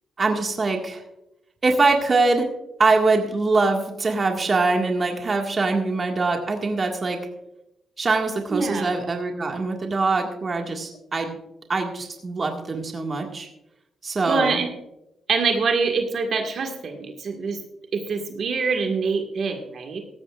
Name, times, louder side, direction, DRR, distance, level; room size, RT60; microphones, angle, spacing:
voice 1, 0.2-1.0 1.6-2.5 2.8-7.2 8.0-11.4 11.7-13.5 14.0-14.6, right 3 dB, 35° right, 2 dB, 1.9 m, -23 dB
voice 2, 8.5-8.9 14.3-14.7 15.3-17.6 17.9-20.0, right 4 dB, 55° right, 3 dB, 1.9 m, -25 dB
17.0 x 14.0 x 2.5 m, 0.88 s
cardioid pair, 105°, 0 cm